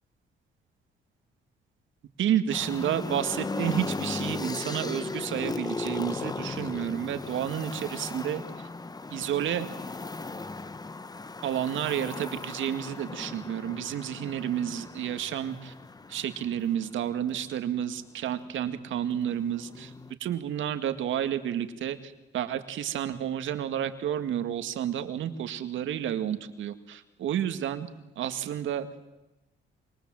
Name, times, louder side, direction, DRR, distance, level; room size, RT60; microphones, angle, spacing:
voice 1, 2.2-8.7 9.1-9.7 11.4-15.7 16.1-19.9 20.2-27.9 28.2-29.1, right 10 dB, 75° right, 8 dB, 2.0 m, -31 dB
sound 1, 2.5-17.4 18.4-20.1, left 3 dB, 20° left, 1.0 m, -37 dB
27.0 x 25.0 x 7.8 m, 0.99 s
cardioid pair, 90°, 20 cm